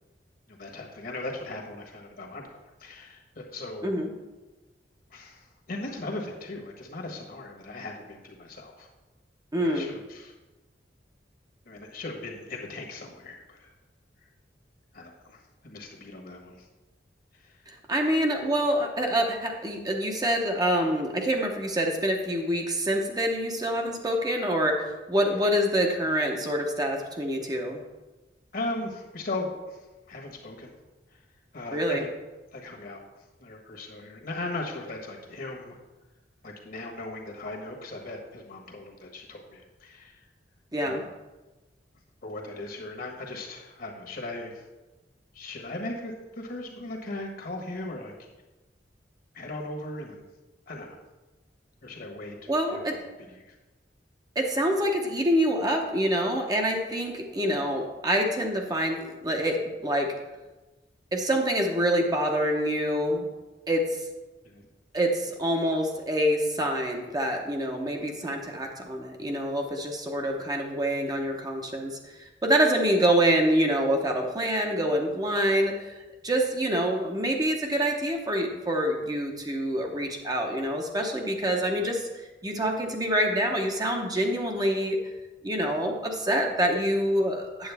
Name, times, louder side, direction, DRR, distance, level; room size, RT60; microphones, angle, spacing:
voice 1, 0.5-2.5 2.8-3.9 5.1-8.9 9.6-10.3 11.6-13.7 14.9-16.6 17.4-17.5 28.5-29.8 30.1-30.7 31.5-32.1 32.5-33.0 33.4-35.8 36.4-40.2 40.8-41.1 42.2-44.6 45.3-48.1 49.3-50.3 50.7-51.0 51.8-52.4 52.7-53.0 53.3-53.5 64.4-64.6, left 2 dB, 55° left, 1 dB, 1.4 m, -38 dB
voice 2, 9.5-9.9 17.7-27.8 31.7-32.0 40.7-41.0 52.5-52.9 54.3-60.1 61.1-63.3 63.7-64.0 64.9-76.0 76.2-82.1 82.4-85.0 85.4-87.7, equal, 25° right, 2 dB, 0.9 m, -26 dB
8.8 x 7.7 x 3.5 m, 1.1 s
head